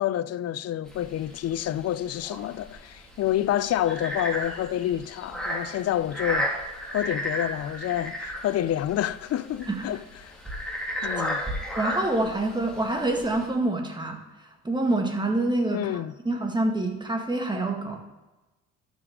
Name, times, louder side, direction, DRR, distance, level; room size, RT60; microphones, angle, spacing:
voice 1, 0.0-6.5 6.9-10.4 11.0-11.4 15.7-16.1, left 12 dB, 55° left, 0.4 m, -28 dB
sound 1, 0.9-13.5, equal, ahead, 2.6 m, -33 dB
voice 2, 11.7-14.2 14.6-18.0, right 2 dB, 15° right, 1.7 m, -26 dB
12.0 x 7.2 x 3.6 m
cardioid pair, 90°, 30 cm